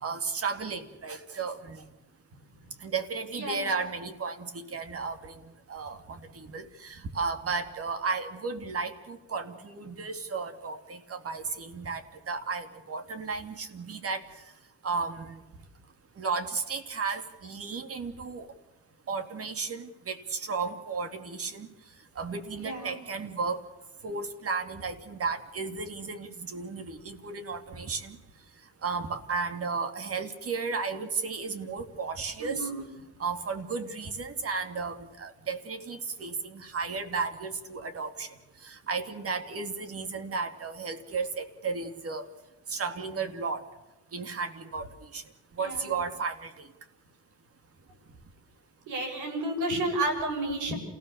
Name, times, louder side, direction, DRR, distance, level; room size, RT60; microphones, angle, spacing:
voice 1, 0.0-1.8 2.8-14.2 14.8-15.4 16.2-18.5 19.1-21.7 22.2-23.6 24.0-28.2 28.8-32.7 33.2-38.3 38.6-42.3 42.7-43.6 44.1-45.2 45.6-46.7, right 4 dB, 50° right, 8 dB, 2.6 m, -34 dB
voice 2, 3.3-3.7 22.6-23.0 32.4-32.9 45.6-46.0 48.9-50.7, right 1 dB, 85° right, 4 dB, 6.9 m, -31 dB
28.5 x 17.0 x 7.0 m, 1.0 s
cardioid pair, 90°, 30 cm